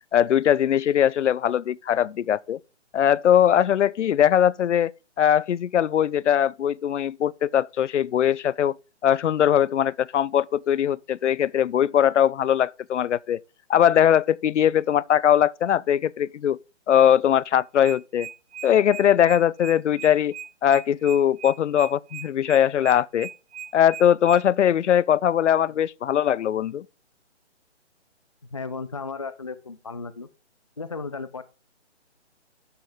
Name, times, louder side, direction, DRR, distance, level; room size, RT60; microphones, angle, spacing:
voice 1, 0.1-2.6 2.9-4.9 5.2-8.7 9.0-13.4 13.7-16.6 16.9-18.3 18.6-20.3 20.6-23.3 23.7-26.9, left 10 dB, 85° left, 0.5 m, -21 dB
sound 1, 17.8-24.4, right 9 dB, 35° right, 1.4 m, -38 dB
voice 2, 28.5-30.3 30.8-31.4, left 4 dB, 30° left, 0.4 m, -34 dB
11.5 x 5.8 x 3.6 m
hypercardioid pair, 160°, 35 cm